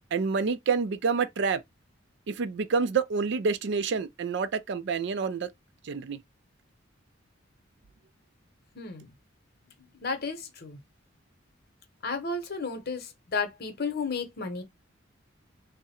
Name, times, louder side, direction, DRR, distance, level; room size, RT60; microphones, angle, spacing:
voice 1, 0.1-1.6 2.3-5.5 5.8-6.2, right 5 dB, 65° right, 0.4 m, -28 dB
voice 2, 8.7-9.1 10.0-10.8 12.0-14.6, left 4 dB, 55° left, 0.9 m, -33 dB
3.6 x 2.1 x 4.2 m
head